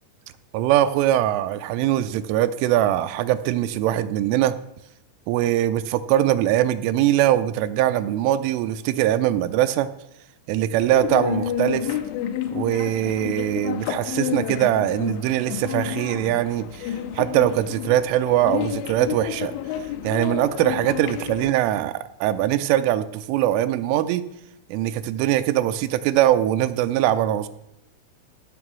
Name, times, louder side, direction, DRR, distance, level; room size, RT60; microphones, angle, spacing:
voice 1, 0.5-4.6 5.3-9.9 10.5-12.0 12.5-19.5 20.0-24.3 24.7-27.5, right 12 dB, 85° right, 12 dB, 3.0 m, -22 dB
sound 1, 10.8-21.5, left 10 dB, 85° left, 3.1 m, -30 dB
15.0 x 5.4 x 6.0 m, 0.81 s
omnidirectional pair, 5.7 m